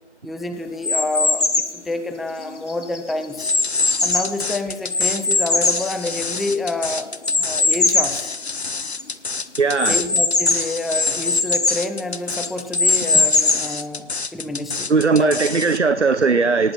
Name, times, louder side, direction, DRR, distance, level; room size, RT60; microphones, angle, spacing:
voice 1, 0.2-1.4 1.7-3.5 4.0-7.1 7.4-8.3 9.9-15.5, left 2 dB, ahead, 0.5 m, -28 dB
sound 1, 0.8-1.8 2.4-4.4 4.9-6.6 7.2-8.2 8.7-8.8 9.0-9.1 9.8-11.9 12.4-13.8, left 3 dB, 85° left, 1.3 m, -20 dB
sound 2, 3.4-15.8, left 4 dB, 65° left, 0.8 m, -29 dB
voice 2, 9.6-10.0 14.9-16.7, right 4 dB, 80° right, 0.9 m, -18 dB
18.5 x 9.8 x 4.3 m
figure-of-eight pair, 175°, 34 cm